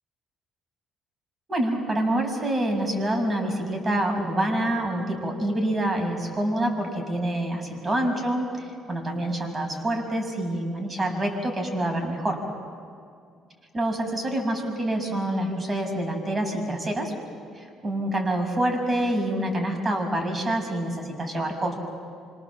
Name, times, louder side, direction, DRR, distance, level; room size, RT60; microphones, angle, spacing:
voice 1, 1.5-12.4 13.7-17.1 17.5-21.7, right 1 dB, 30° right, 3 dB, 6.5 m, -26 dB
27.0 x 26.0 x 7.4 m, 2.3 s
supercardioid pair, 70°, 0 cm